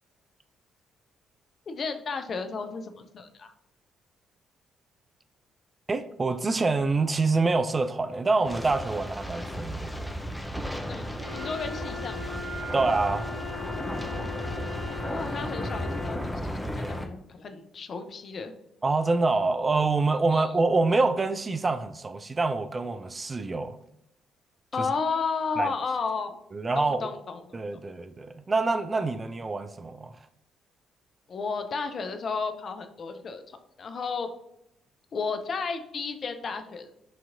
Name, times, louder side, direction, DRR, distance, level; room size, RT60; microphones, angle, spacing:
voice 1, 1.7-3.5 9.4-9.6 10.9-12.4 15.1-18.5 20.3-20.6 24.7-26.4 26.7-27.6 31.3-33.4 33.8-34.3 35.1-36.9, left 4 dB, 45° left, 0.4 m, -33 dB
voice 2, 5.9-9.9 12.7-13.3 18.8-23.8 25.6-25.7 26.5-27.1 27.5-30.1, right 3 dB, 30° right, 0.3 m, -26 dB
sound 1, 8.4-17.1, equal, 5° left, 0.6 m, -34 dB
Wind instrument woodwind instrument, 11.1-16.3, left 4 dB, 55° right, 1.1 m, -39 dB
5.9 x 2.8 x 2.5 m
figure-of-eight pair, 45°, 0 cm